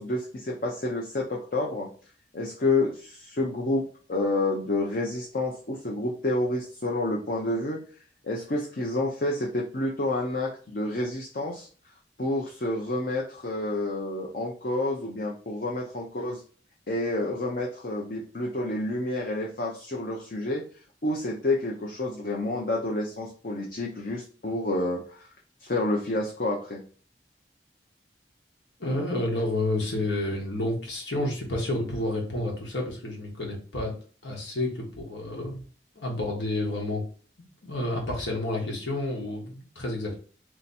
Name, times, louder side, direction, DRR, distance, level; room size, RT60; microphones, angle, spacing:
voice 1, 0.0-1.9 2.3-3.8 4.1-7.8 8.2-11.7 12.2-16.4 16.9-20.6 21.0-25.3 25.6-26.8, left 2 dB, 50° left, -2 dB, 0.6 m, -29 dB
voice 2, 28.8-33.9 34.2-35.6 35.9-37.0 37.6-40.2, left 1 dB, 90° left, -1 dB, 1.4 m, -30 dB
3.3 x 2.9 x 4.1 m, 0.41 s
head